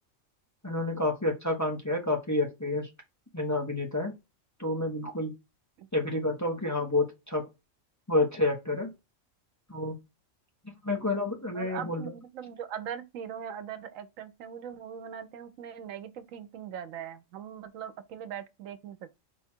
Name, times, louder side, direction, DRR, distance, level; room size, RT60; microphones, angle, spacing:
voice 1, 0.6-2.9 3.3-4.1 4.6-5.3 5.9-7.5 8.1-8.9 9.7-10.0 10.8-12.1, left 2 dB, 15° left, 0.8 m, -29 dB
voice 2, 11.5-19.2, right 8 dB, 90° right, 1.0 m, -41 dB
4.5 x 2.4 x 4.3 m
omnidirectional pair, 1.3 m